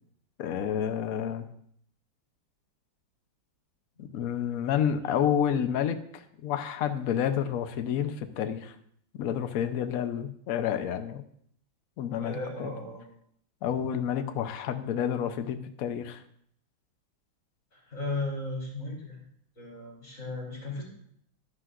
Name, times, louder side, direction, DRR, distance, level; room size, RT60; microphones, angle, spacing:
voice 1, 0.4-1.4 4.0-8.7 9.1-11.3 12.0-12.7 13.6-16.2, left 9 dB, 60° left, 9 dB, 1.0 m, -29 dB
voice 2, 12.2-13.0 17.7-19.2 19.6-20.8, left 2 dB, 40° left, -3 dB, 3.5 m, -36 dB
13.5 x 11.5 x 2.5 m, 0.66 s
omnidirectional pair, 2.1 m